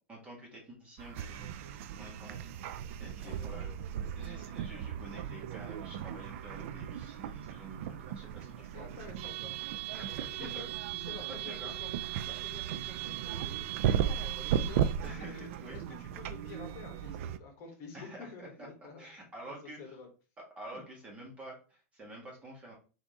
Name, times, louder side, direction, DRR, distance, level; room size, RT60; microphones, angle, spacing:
voice 1, 0.1-1.5 2.0-2.5 3.0-3.7 4.1-9.1 9.9-10.7 11.4-11.7 15.0-15.8 17.9-18.7 19.0-19.9 20.6-22.7, right 1 dB, 15° right, -2 dB, 1.4 m, -49 dB
sound 1, 1.0-17.4, right 10 dB, 65° right, 0.3 m, -36 dB
voice 2, 3.2-3.6 8.6-9.5 10.0-10.6 10.9-11.9 12.3-19.1 19.5-20.1 20.7-20.8, left 4 dB, 40° left, 2 dB, 1.4 m, -49 dB
3.5 x 2.7 x 4.7 m, 0.36 s
supercardioid pair, 155°, 8 cm